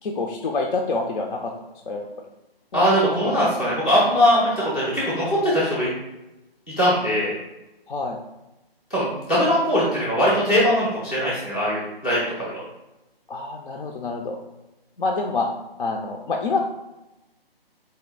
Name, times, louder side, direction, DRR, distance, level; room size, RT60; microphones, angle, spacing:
voice 1, 0.0-1.5 1.9-2.1 2.7-3.3 7.9-8.2 13.3-14.4 15.0-15.5 15.8-16.6, left 3 dB, 55° left, 1 dB, 0.5 m, -27 dB
voice 2, 2.7-5.9 6.8-7.3 8.9-12.5, equal, 5° left, -9 dB, 0.5 m, -21 dB
4.3 x 2.7 x 3.8 m, 0.99 s
hypercardioid pair, 160°, 31 cm